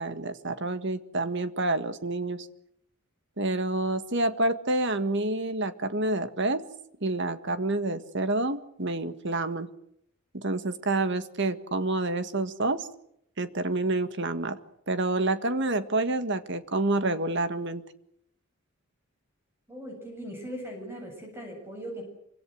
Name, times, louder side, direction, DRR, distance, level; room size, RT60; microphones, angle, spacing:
voice 1, 0.0-2.5 3.4-6.6 7.0-9.7 10.3-12.9 13.4-14.6 14.9-17.8, right 2 dB, 55° right, 10 dB, 1.8 m, -28 dB
voice 2, 19.7-22.0, equal, 10° right, 1 dB, 7.5 m, -39 dB
26.5 x 25.0 x 6.5 m, 0.73 s
head